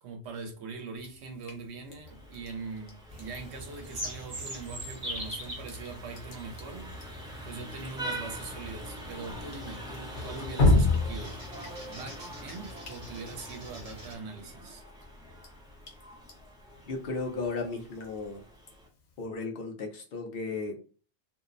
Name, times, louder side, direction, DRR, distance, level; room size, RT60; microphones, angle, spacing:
voice 1, 0.0-6.9 7.4-11.4 11.9-14.8, right 4 dB, 75° right, 5 dB, 0.9 m, -42 dB
Drip, 1.0-19.2, left 2 dB, 85° left, 1.0 m, -34 dB
Vehicle horn car horn honking, 2.1-18.9, equal, 5° right, 0.3 m, -45 dB
sound 1, 3.1-14.1, equal, 40° right, 1.0 m, -44 dB
voice 2, 16.9-18.4 19.2-20.8, left 3 dB, 60° left, 3 dB, 0.7 m, -35 dB
2.5 x 2.0 x 2.4 m, 0.37 s
omnidirectional pair, 1.1 m